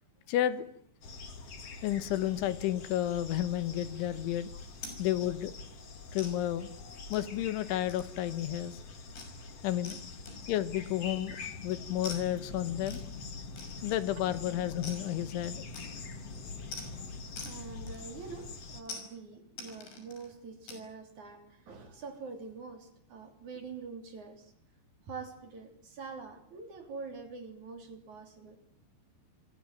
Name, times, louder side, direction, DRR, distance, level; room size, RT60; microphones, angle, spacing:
voice 1, 0.3-0.7 1.8-4.5 5.0-5.5 6.1-6.7 7.1-8.8 9.6-10.0 10.5-11.4 11.6-13.0 13.8-15.6, left 12 dB, 85° left, 3.8 m, -31 dB
sound 1, 1.0-18.8, left 3 dB, 40° left, 2.7 m, -44 dB
sound 2, 4.8-5.0 5.4-5.6 6.2-6.3 7.1-7.4 7.9-8.2 8.5-8.7 9.2-9.4 9.9-10.0 10.3-10.7 12.0-12.2 12.9-13.1 13.6-14.1 14.8-15.1 15.7-16.1 16.7-16.9 17.4-17.6 17.9-18.3 18.9-19.1 19.6-20.3 20.7-20.8, left 3 dB, 65° left, 8.3 m, -45 dB
voice 2, 17.4-24.5 25.0-28.6, right 4 dB, 45° right, 4.2 m, -45 dB
27.0 x 22.5 x 9.3 m
omnidirectional pair, 5.4 m